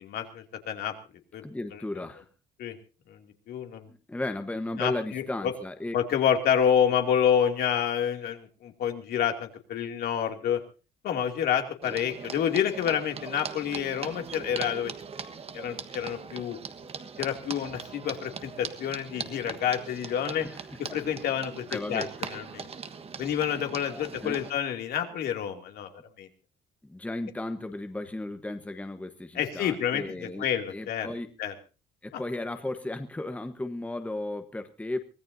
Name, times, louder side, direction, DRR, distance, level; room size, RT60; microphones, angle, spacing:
voice 1, 0.1-0.9 1.3-1.4 1.7-1.8 2.6-2.7 3.1-3.2 3.5-3.9 4.8-5.5 5.9-10.6 11.0-14.9 15.5-16.6 17.2-20.5 20.9-22.7 23.2-25.9 26.2-26.3 29.3-31.1 31.4-31.5 32.1-32.2, left 8 dB, 65° left, 4 dB, 2.7 m, -28 dB
voice 2, 1.4-2.3 3.9-5.9 20.4-20.5 20.9-21.0 21.7-22.1 23.5-23.6 23.9-24.4 26.8-31.3 32.0-35.0, left 2 dB, 10° left, 7 dB, 1.2 m, -35 dB
sound 1, 11.8-24.5, right 6 dB, 35° right, 1.4 m, -40 dB
24.0 x 16.5 x 2.7 m, 0.33 s
cardioid pair, 110°, 17 cm